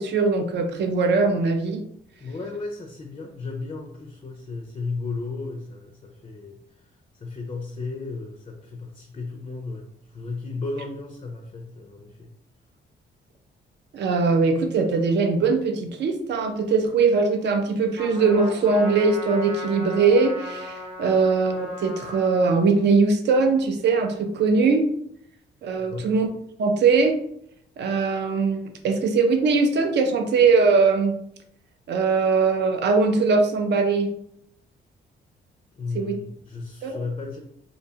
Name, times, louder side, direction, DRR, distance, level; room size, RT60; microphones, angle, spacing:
voice 1, 0.0-1.8 13.9-24.8 25.6-26.3 26.6-27.1 27.8-31.1 31.9-34.1 35.9-36.2 36.8-37.0, right 4 dB, 65° right, 6 dB, 0.5 m, -21 dB
voice 2, 2.2-6.6 7.2-12.3 25.8-26.1 35.7-37.4, left 3 dB, 30° left, 2 dB, 0.4 m, -34 dB
Trumpet, 18.0-22.6, left 1 dB, 30° right, 0.9 m, -37 dB
2.6 x 2.1 x 2.7 m, 0.71 s
cardioid pair, 95°, 20 cm